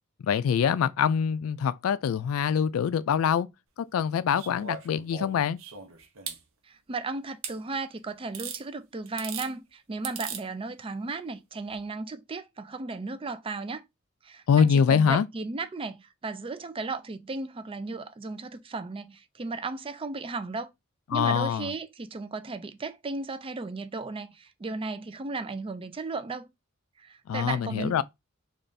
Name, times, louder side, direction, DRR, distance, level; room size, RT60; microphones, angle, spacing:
voice 1, 0.2-3.5 3.8-5.6 14.5-15.3 21.1-21.7 27.3-28.0, left 7 dB, 75° left, 0.3 m, -24 dB
sound 1, 4.4-6.4 7.4-7.6 8.3-8.6 9.1-9.5 10.0-10.4 11.7-11.8, right 7 dB, 65° right, 0.8 m, -38 dB
voice 2, 6.6-13.8 14.2-20.7 21.1-26.5 27.0-28.0, right 3 dB, 25° right, 0.4 m, -35 dB
3.3 x 2.5 x 3.9 m
head